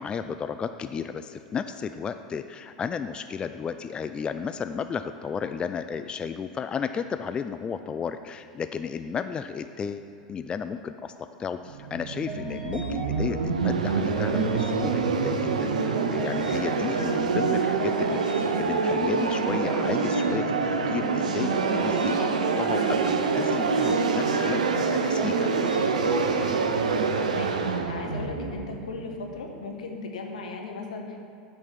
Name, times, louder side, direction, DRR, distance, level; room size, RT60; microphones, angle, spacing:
voice 1, 0.0-25.5, left 6 dB, 25° left, 10 dB, 0.3 m, -33 dB
sound 1, 11.7-29.5, right 4 dB, 85° right, 0.6 m, -26 dB
sound 2, 12.3-27.0, right 2 dB, 20° right, 2.0 m, -39 dB
voice 2, 26.7-31.3, left 4 dB, 80° left, 2 dB, 1.2 m, -38 dB
9.7 x 5.3 x 5.8 m, 2.5 s
hypercardioid pair, 95°, 4 cm